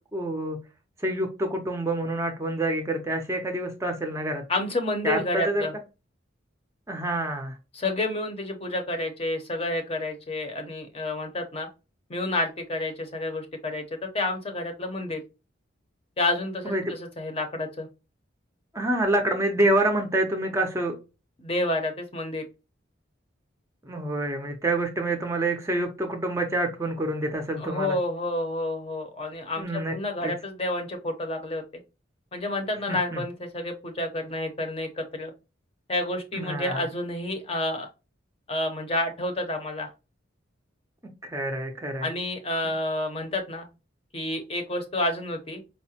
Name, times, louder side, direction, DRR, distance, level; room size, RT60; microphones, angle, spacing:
voice 1, 0.1-0.6 1.0-4.4 5.0-5.7 6.9-7.6 16.6-16.8 18.7-21.0 23.8-28.0 29.6-29.9 30.2-30.3 32.9-33.2 36.3-36.8 41.2-42.1 42.6-42.7, right 1 dB, 15° right, 0.5 m, -27 dB
voice 2, 4.5-5.7 7.7-11.7 12.1-15.2 16.2-17.9 21.4-22.4 27.6-31.6 32.3-35.3 35.9-37.9 38.5-39.9 42.0-43.7 44.1-45.6, left 2 dB, 30° left, 0.6 m, -29 dB
4.7 x 2.1 x 2.7 m
head